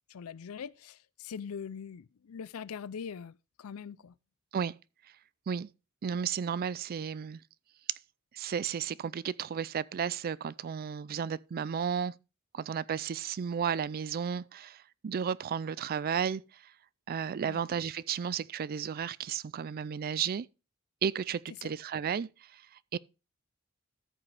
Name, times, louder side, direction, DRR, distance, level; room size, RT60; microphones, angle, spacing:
voice 1, 0.1-4.1 17.4-17.6 21.6-21.7, left 6 dB, 85° left, 0.4 m, -42 dB
voice 2, 6.0-7.4 8.3-12.1 12.5-16.4 17.1-20.5 21.0-22.6 22.9-23.0, right 7 dB, 45° right, 0.4 m, -33 dB
14.0 x 6.2 x 3.3 m
head